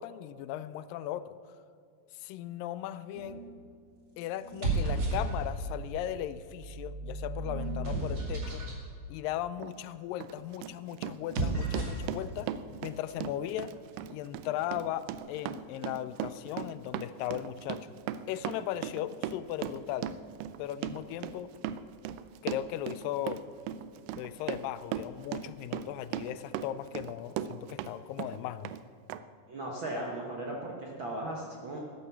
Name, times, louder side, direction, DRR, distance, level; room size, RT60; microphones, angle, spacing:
voice 1, 0.0-1.4 2.2-3.4 4.2-8.7 9.1-12.5 12.8-13.7 14.1-17.9 18.3-20.1 20.6-21.5 22.4-23.4 24.1-28.7, left 12 dB, 85° left, 14 dB, 2.2 m, -37 dB
sound 1, 3.1-3.6 4.4-5.8 6.5-8.8 11.1-12.1, right 2 dB, 35° right, 2.6 m, -33 dB
Run, 9.6-9.7 10.2-27.9 28.2-28.8 29.1-29.2, right 10 dB, 80° right, 2.1 m, -38 dB
voice 2, 29.5-31.8, right 1 dB, 55° right, -2 dB, 1.3 m, -37 dB
13.0 x 10.5 x 6.9 m, 2.2 s
omnidirectional pair, 4.0 m